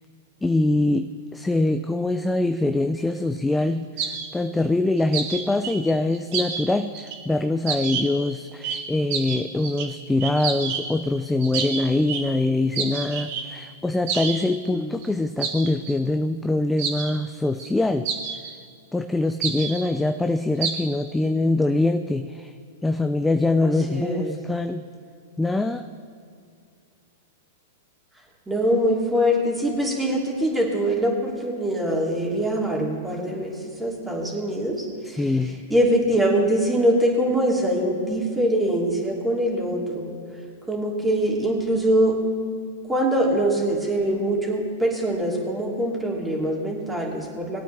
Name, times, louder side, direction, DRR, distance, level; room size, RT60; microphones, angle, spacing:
voice 1, 0.4-18.1 18.9-22.5 22.8-24.9 25.4-25.9 35.0-35.6, left 2 dB, 5° left, 7 dB, 0.4 m, -24 dB
sound 1, 4.0-4.3 5.0-6.6 6.9-7.2 7.7-8.3 8.6-8.8 9.1-9.9 10.2-10.9 11.4-12.2 12.7-13.4 14.1-14.4 14.6-14.7 15.0-15.1 15.4-15.9 16.8-17.1 17.6-17.7 18.0-18.5 19.4-19.8 20.6-20.7, right 6 dB, 55° right, 1.9 m, -29 dB
voice 2, 23.6-24.4 28.5-35.3 35.7-40.1 40.7-42.2 42.9-47.6, right 1 dB, 10° right, -3 dB, 2.8 m, -23 dB
21.0 x 8.9 x 3.4 m, 2.3 s
hypercardioid pair, 125°, 0 cm